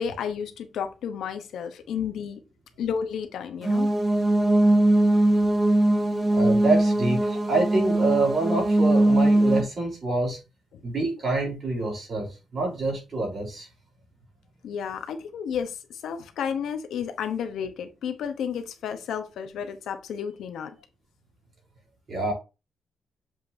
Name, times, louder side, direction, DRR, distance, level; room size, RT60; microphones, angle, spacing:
voice 1, 0.0-2.4 2.8-4.0 10.7-10.8 14.6-20.7, left 7 dB, 70° left, 1.0 m, -32 dB
sound 1, 3.6-9.6, right 1 dB, 20° right, 1.2 m, -21 dB
voice 2, 6.3-10.4 10.8-13.7 22.1-22.3, right 2 dB, 35° right, 3.9 m, -26 dB
7.5 x 5.6 x 2.7 m
cardioid pair, 175°, 0 cm